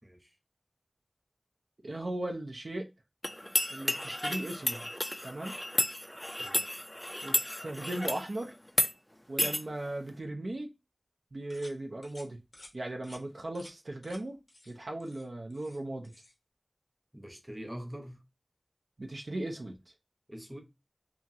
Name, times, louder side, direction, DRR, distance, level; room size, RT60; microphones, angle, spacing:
voice 1, 0.0-0.3 6.4-6.7 17.1-18.2 20.3-20.6, equal, 20° right, 0.8 m, -44 dB
voice 2, 1.8-2.9 3.7-4.9 5.2-5.5 7.2-8.5 9.3-10.7 11.3-12.4 12.7-14.4 14.7-16.1 19.0-19.8, right 1 dB, 80° right, 0.5 m, -37 dB
sound 1, 3.2-8.3 8.7-8.9 9.4-9.6, equal, 15° left, 0.3 m, -32 dB
sound 2, 11.5-11.8 12.0-12.3 12.5-12.7 13.0-13.2 13.5-13.7 14.0-14.2 14.5-14.7 15.0-15.8 16.0-16.3, left 1 dB, 85° left, 0.9 m, -53 dB
2.8 x 2.4 x 2.6 m
wide cardioid pair, 50°, 0 cm